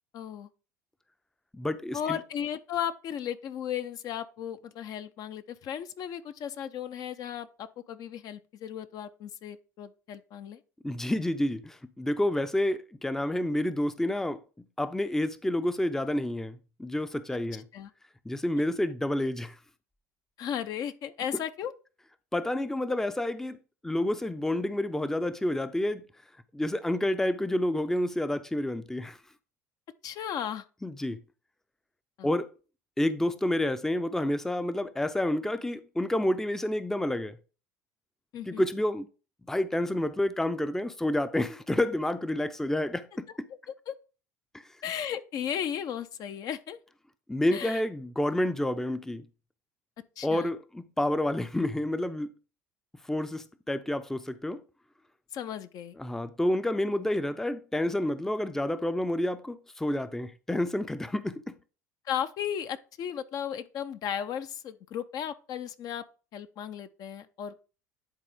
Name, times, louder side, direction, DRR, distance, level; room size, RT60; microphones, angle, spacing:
voice 1, 0.1-0.5 1.9-10.6 17.7-17.9 20.4-21.7 30.0-30.6 32.2-32.3 38.3-38.7 43.9-44.0 44.8-46.8 47.5-47.8 50.2-50.5 55.3-56.0 62.1-66.0 66.3-67.5, left 9 dB, 50° left, 0.6 m, -35 dB
voice 2, 1.5-2.2 10.8-14.4 14.8-17.7 18.3-19.6 22.3-23.6 23.8-26.0 26.5-29.2 30.8-31.2 32.2-32.5 33.0-37.4 38.5-39.1 39.5-43.3 47.3-49.3 50.2-52.3 53.1-54.6 56.0-61.5, left 1 dB, 5° left, 0.5 m, -29 dB
10.5 x 3.9 x 3.6 m
hypercardioid pair, 70°, 8 cm